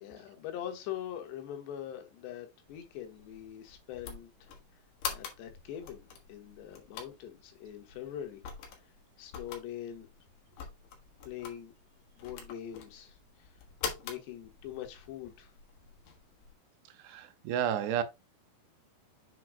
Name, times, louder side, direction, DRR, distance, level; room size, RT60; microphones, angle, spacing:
voice 1, 0.0-4.5 5.1-8.4 9.2-10.1 11.3-11.7 12.2-13.5 14.0-15.5, left 10 dB, 85° left, 3.4 m, -43 dB
sound 1, 2.7-16.5, left 6 dB, 60° left, 2.6 m, -45 dB
voice 2, 17.0-18.0, right 9 dB, 85° right, 2.8 m, -31 dB
7.7 x 6.2 x 2.2 m
omnidirectional pair, 4.9 m